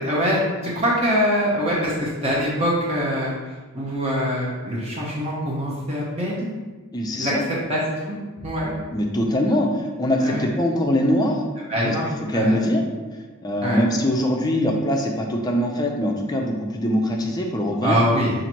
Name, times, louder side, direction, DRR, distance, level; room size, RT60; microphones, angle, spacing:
voice 1, 0.0-3.3 3.7-6.5 7.2-7.3 7.7-8.2 8.4-8.7 10.2-10.4 11.7-12.0 12.3-12.6 13.6-13.8 17.8-18.3, equal, 30° right, -5 dB, 0.7 m, -23 dB
voice 2, 6.9-7.5 8.9-11.4 11.9-12.0 12.3-12.8 13.4-18.0, equal, 20° left, 1 dB, 0.4 m, -22 dB
5.6 x 2.5 x 2.9 m, 1.3 s
head